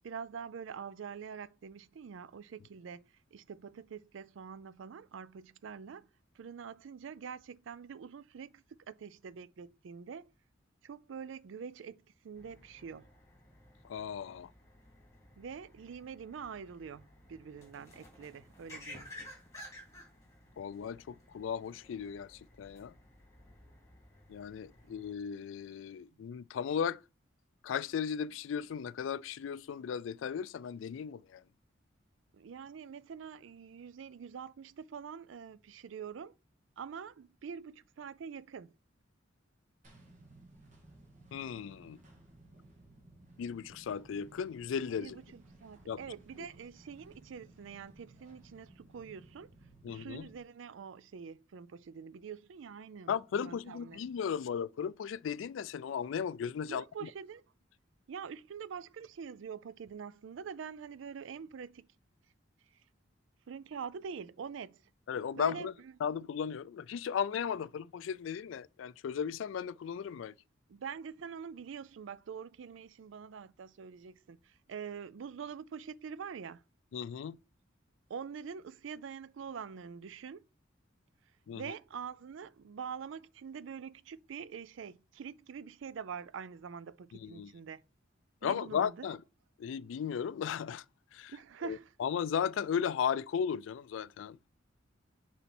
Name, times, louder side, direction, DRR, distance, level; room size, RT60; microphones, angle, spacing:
voice 1, 0.0-6.1 6.4-10.3 10.8-13.1 15.4-19.1 32.3-36.3 36.8-38.7 45.0-49.5 49.9-53.1 53.4-54.0 56.7-57.4 58.1-61.9 63.5-64.8 65.4-65.9 70.7-76.6 78.1-80.4 81.5-87.8 88.4-89.1 91.3-91.9, right 6 dB, 75° right, 0.4 m, -45 dB
sound 1, 12.4-25.1, left 1 dB, 15° left, 2.4 m, -55 dB
voice 2, 13.8-14.5 20.6-22.9 24.3-27.0 27.6-31.4 41.3-42.0 43.4-45.2 45.9-46.0 49.8-50.3 53.1-57.1 65.1-65.7 66.0-70.3 76.9-77.4 81.5-81.7 87.1-87.5 88.4-89.2 89.6-90.8 91.1-91.4 91.6-94.5, left 7 dB, 75° left, 0.3 m, -36 dB
sound 2, 39.8-50.4, right 2 dB, 40° right, 2.2 m, -58 dB
7.0 x 4.2 x 4.3 m
head